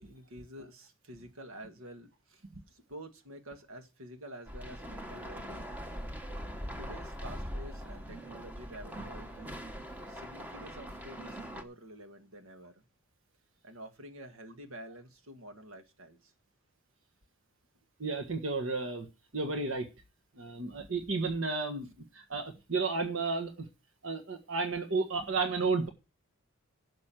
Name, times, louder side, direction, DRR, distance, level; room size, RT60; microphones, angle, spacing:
voice 1, 0.0-5.7 6.6-9.6 10.1-12.8 13.6-16.3, equal, 90° right, 1.8 m, -49 dB
sound 1, 4.5-11.6, equal, 10° right, 1.0 m, -42 dB
voice 2, 18.0-19.1 19.3-19.9 20.4-21.9 22.1-23.7 24.0-25.9, right 3 dB, 65° right, 1.4 m, -32 dB
11.5 x 6.4 x 7.6 m
head